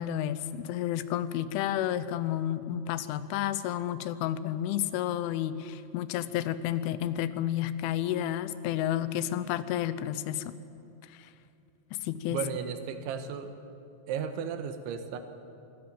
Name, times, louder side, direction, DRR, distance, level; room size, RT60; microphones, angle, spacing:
voice 1, 0.0-10.5 11.1-11.3 11.9-12.4, left 11 dB, 90° left, 14 dB, 3.2 m, -31 dB
voice 2, 12.3-13.5 14.1-15.2, right 7 dB, 85° right, 8 dB, 3.5 m, -34 dB
24.0 x 13.0 x 8.8 m, 2.8 s
omnidirectional pair, 5.4 m